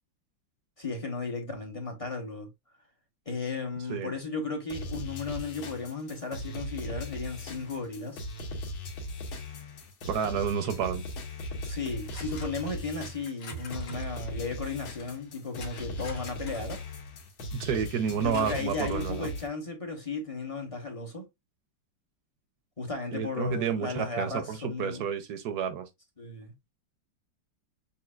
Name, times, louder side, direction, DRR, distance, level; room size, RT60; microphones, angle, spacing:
voice 1, 0.8-2.5 3.3-8.3 11.6-16.8 18.2-21.2 22.8-25.1 26.2-26.7, left 3 dB, 30° left, 0.7 m, -35 dB
sound 1, 4.7-19.5, left 1 dB, 85° left, 2.0 m, -38 dB
voice 2, 10.0-11.0 17.5-19.3 23.1-25.9, right 7 dB, 70° right, 1.0 m, -30 dB
sound 2, 10.6-10.9 12.0-12.7 13.3-14.1 14.8-17.2 17.6-17.7 18.3-19.1, left 1 dB, 60° left, 1.9 m, -45 dB
7.0 x 2.7 x 2.4 m
omnidirectional pair, 2.2 m